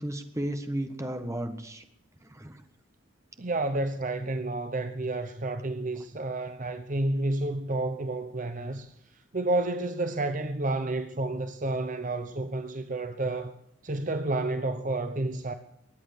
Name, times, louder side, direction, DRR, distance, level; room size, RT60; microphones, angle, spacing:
voice 1, 0.0-1.8 2.2-2.6, right 1 dB, 15° right, 1.4 m, -34 dB
voice 2, 3.4-8.9 9.3-13.5 13.8-15.5, right 2 dB, 40° right, 0.8 m, -30 dB
22.0 x 8.6 x 6.8 m
head